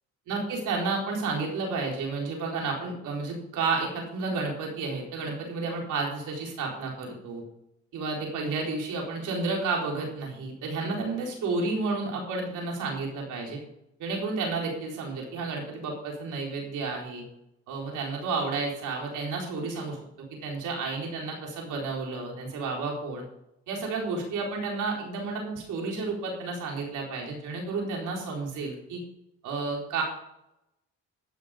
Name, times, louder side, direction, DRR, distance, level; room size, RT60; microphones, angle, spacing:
voice 1, 0.3-7.4 7.9-13.6 14.0-17.2 17.7-20.0 20.4-23.2 23.7-29.0 29.4-30.0, right 3 dB, 85° right, 0 dB, 4.1 m, -31 dB
15.5 x 6.6 x 5.0 m, 0.81 s
cardioid pair, 90°, 30 cm